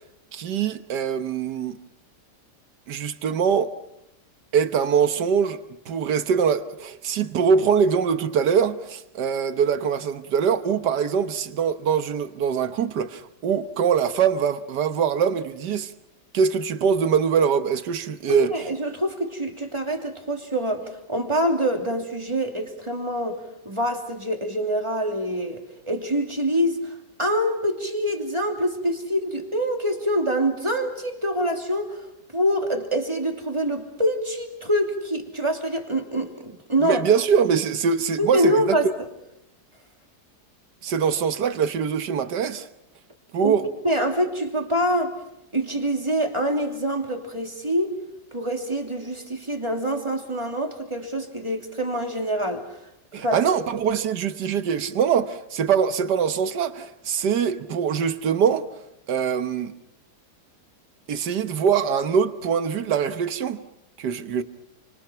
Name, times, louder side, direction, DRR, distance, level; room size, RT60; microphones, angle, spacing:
voice 1, 0.3-1.8 2.9-3.7 4.5-15.9 16.3-18.5 36.8-38.8 40.8-42.7 43.3-43.7 53.1-58.7 59.1-59.7 61.1-63.6 64.0-64.4, right 7 dB, 85° right, 1.8 m, -23 dB
voice 2, 18.3-32.0 32.3-37.0 38.2-38.9 43.4-43.5 43.8-45.2 45.5-47.9 48.3-52.8 53.2-53.4, equal, 15° right, 2.9 m, -25 dB
29.5 x 25.5 x 5.8 m
omnidirectional pair, 1.8 m